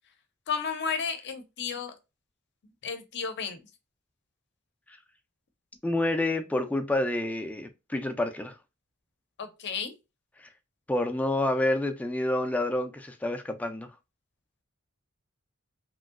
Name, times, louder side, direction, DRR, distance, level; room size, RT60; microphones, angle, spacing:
voice 1, 0.5-1.9 2.8-3.6 9.4-9.9, left 6 dB, 55° left, 0.6 m, -32 dB
voice 2, 5.8-8.6 10.9-13.9, left 1 dB, 5° left, 0.3 m, -28 dB
3.0 x 2.6 x 2.4 m
head